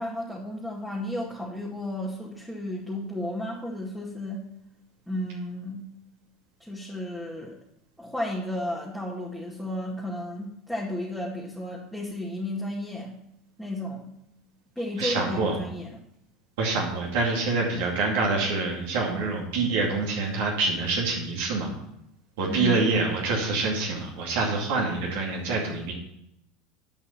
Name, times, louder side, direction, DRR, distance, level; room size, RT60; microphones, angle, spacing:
voice 1, 0.0-4.4 5.1-5.9 6.6-7.5 8.0-13.2 13.6-14.1 14.8-15.9 22.5-22.7, left 1 dB, 5° left, -5 dB, 2.0 m, -33 dB
voice 2, 15.0-15.6 16.6-21.7 22.4-25.9, right 3 dB, 70° right, -2 dB, 2.3 m, -26 dB
10.5 x 5.4 x 5.8 m, 0.80 s
hypercardioid pair, 85°, 0 cm